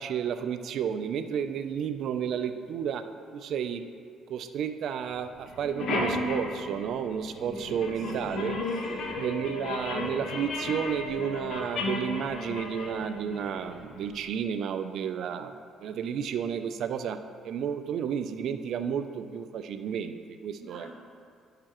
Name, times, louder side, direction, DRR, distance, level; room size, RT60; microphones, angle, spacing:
voice 1, 0.0-3.0 3.3-3.8 4.3-8.6 9.2-15.5 15.8-17.2 17.4-20.9, right 8 dB, 70° right, 9 dB, 0.4 m, -32 dB
sound 1, 5.1-5.2 5.5-14.1, left 2 dB, 65° left, 1.2 m, -34 dB
voice 2, 7.5-8.4 8.7-9.2 20.6-21.0, right 2 dB, 35° right, -9 dB, 1.5 m, -46 dB
10.5 x 6.7 x 3.0 m, 2.2 s
cardioid pair, 85°, 0 cm